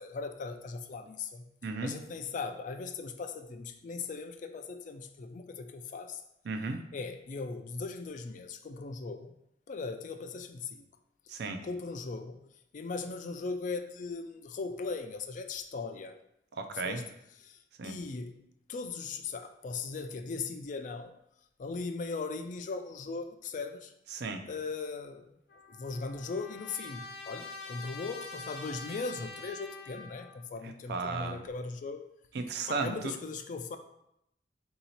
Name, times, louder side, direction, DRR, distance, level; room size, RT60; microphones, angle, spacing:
voice 1, 0.0-1.5 1.8-6.2 6.9-9.3 9.7-10.9 11.3-11.4 11.6-12.4 12.7-16.2 16.7-17.0 17.4-18.4 18.7-21.1 21.6-23.9 24.5-32.1 32.7-33.8, left 4 dB, 45° left, 7 dB, 0.3 m, -39 dB
voice 2, 1.6-2.0 6.5-6.8 11.3-11.6 16.5-17.0 17.8-18.0 24.1-24.5 30.6-31.4 32.3-33.1, right 3 dB, 60° right, 6 dB, 0.4 m, -35 dB
Trumpet, 25.5-30.4, left 3 dB, 65° left, 0.8 m, -45 dB
3.8 x 2.7 x 4.3 m, 0.80 s
head